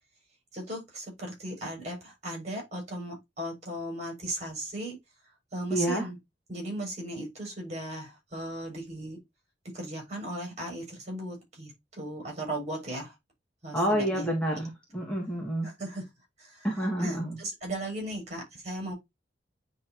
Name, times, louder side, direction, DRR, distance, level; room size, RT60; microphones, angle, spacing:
voice 1, 0.5-5.0 5.5-6.2 6.5-9.2 9.7-13.1 13.6-14.3 15.6-16.1 16.4-16.7 17.0-18.9, right 1 dB, 40° right, 5.2 m, -37 dB
voice 2, 5.7-6.0 13.7-15.7 16.6-17.4, right 1 dB, 5° left, 2.3 m, -28 dB
9.6 x 3.8 x 2.9 m
head